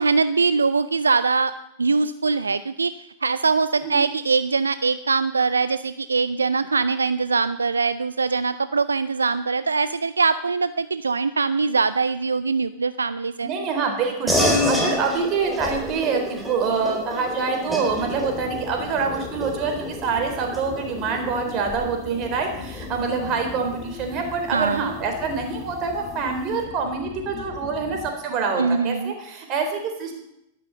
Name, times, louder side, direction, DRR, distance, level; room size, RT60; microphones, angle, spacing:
voice 1, 0.0-1.5 1.8-2.9 3.2-13.5 24.5-24.9 28.6-29.1, right 4 dB, 80° right, 14 dB, 0.4 m, -22 dB
voice 2, 13.4-30.1, right 5 dB, 40° right, 4 dB, 3.9 m, -26 dB
sound 1, 14.3-24.1, left 1 dB, 5° right, 4.2 m, -29 dB
sound 2, 17.8-28.1, left 8 dB, 35° left, 1.6 m, -39 dB
12.0 x 11.5 x 7.0 m, 0.82 s
figure-of-eight pair, 95°, 0 cm